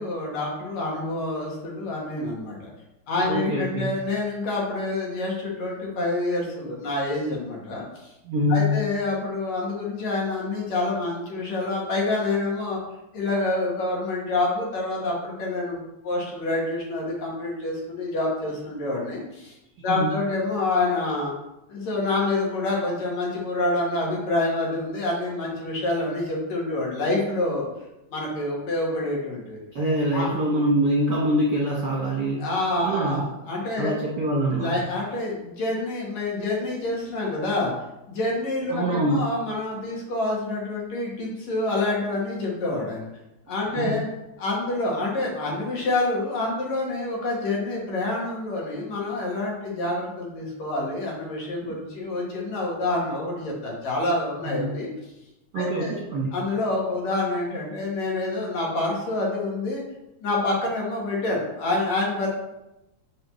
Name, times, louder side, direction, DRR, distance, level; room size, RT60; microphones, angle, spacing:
voice 1, 0.0-2.7 3.1-8.1 8.5-12.8 13.1-21.3 21.7-27.7 28.1-29.6 30.1-30.3 32.4-34.0 34.6-37.7 38.1-43.1 43.5-44.1 44.4-54.9 55.6-56.0 56.3-59.8 60.2-62.3, left 2 dB, 70° left, -3 dB, 2.9 m, -27 dB
voice 2, 3.3-3.9 8.2-8.8 19.9-20.2 29.7-32.5 32.8-33.2 33.7-34.7 38.7-39.3 43.5-44.0 51.7-51.8 54.4-54.8 55.5-56.4, equal, 50° right, -4 dB, 1.4 m, -24 dB
5.5 x 4.6 x 5.6 m, 0.92 s
omnidirectional pair, 3.3 m